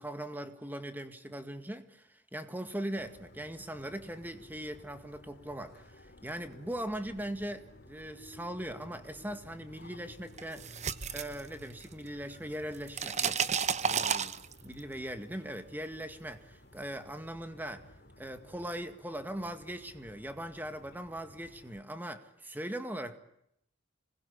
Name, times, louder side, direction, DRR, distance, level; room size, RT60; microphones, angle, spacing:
voice 1, 0.0-13.4 13.8-14.3 14.6-17.9 18.2-23.2, right 1 dB, 10° right, 2.0 m, -40 dB
sound 1, 3.0-21.8, left 1 dB, 50° left, 2.9 m, -55 dB
sound 2, 10.4-12.1 12.3-14.8, right 7 dB, 35° right, 0.9 m, -32 dB
26.5 x 20.5 x 8.5 m
head